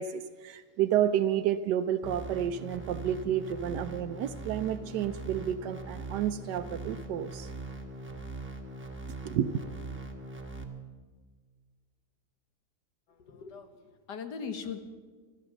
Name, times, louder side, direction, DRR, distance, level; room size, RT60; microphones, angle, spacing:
voice 1, 0.0-7.5 9.2-9.5, right 10 dB, 85° right, 8 dB, 1.2 m, -30 dB
sound 1, 2.0-10.6, right 2 dB, 10° right, 1.2 m, -41 dB
voice 2, 13.1-14.8, left 6 dB, 85° left, 7 dB, 1.8 m, -40 dB
14.5 x 12.5 x 7.0 m, 1.5 s
omnidirectional pair, 1.7 m